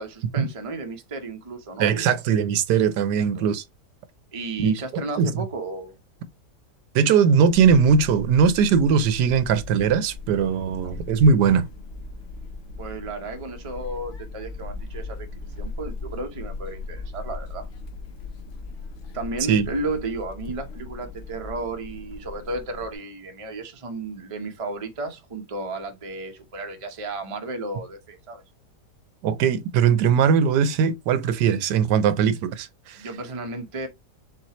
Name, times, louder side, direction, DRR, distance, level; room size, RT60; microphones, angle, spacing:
voice 1, 0.0-2.1 3.1-3.5 4.3-5.9 10.8-11.0 12.8-17.7 19.1-28.4 33.0-33.9, right 2 dB, 30° right, 0.6 m, -33 dB
voice 2, 1.8-3.6 4.6-4.7 5.2-5.3 6.9-11.7 19.5-19.7 29.2-33.1, right 6 dB, 80° right, 1.2 m, -20 dB
sound 1, 7.5-23.0, left 3 dB, 55° left, 0.9 m, -38 dB
4.4 x 4.1 x 2.9 m
omnidirectional pair, 1.8 m